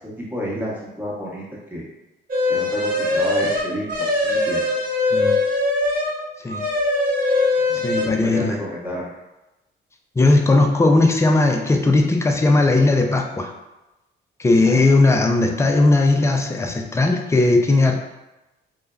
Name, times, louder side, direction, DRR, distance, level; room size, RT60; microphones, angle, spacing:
voice 1, 0.2-1.5 1.7-1.8 2.5-4.6 7.7-9.1 14.6-14.8, equal, 10° right, -6 dB, 1.0 m, -30 dB
sound 1, 2.3-6.2 6.5-8.1, left 2 dB, 45° right, 0.8 m, -21 dB
voice 2, 7.7-8.6 10.2-13.5 14.4-18.0, left 2 dB, 15° left, 3 dB, 0.4 m, -17 dB
3.3 x 2.1 x 2.3 m, 0.99 s
cardioid pair, 90°, 20 cm